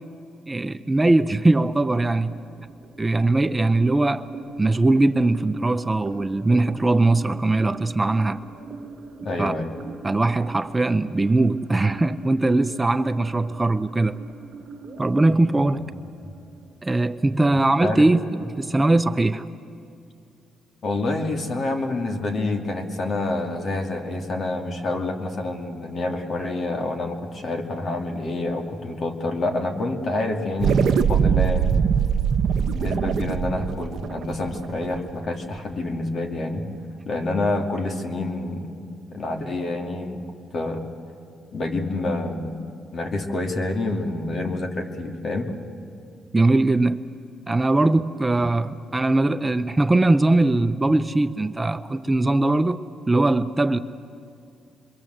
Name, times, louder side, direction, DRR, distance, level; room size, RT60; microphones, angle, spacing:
voice 1, 0.5-2.4 3.0-4.3 4.6-8.4 9.4-9.5 10.0-14.2 15.0-15.8 16.8-19.4 46.3-47.1 47.5-52.8 53.1-53.8, right 2 dB, 15° right, 0.6 m, -20 dB
sound 1, 2.3-17.3, right 4 dB, 45° right, 1.5 m, -42 dB
voice 2, 9.2-9.7 15.8-16.0 17.8-18.1 20.8-31.7 32.6-36.7 37.1-38.7 39.1-40.2 40.5-40.9 41.5-42.5 42.9-45.5, left 2 dB, 50° left, 2.5 m, -27 dB
sound 2, 30.6-35.3, right 7 dB, 65° right, 1.0 m, -22 dB
27.5 x 23.0 x 7.9 m
cardioid pair, 90°, 0 cm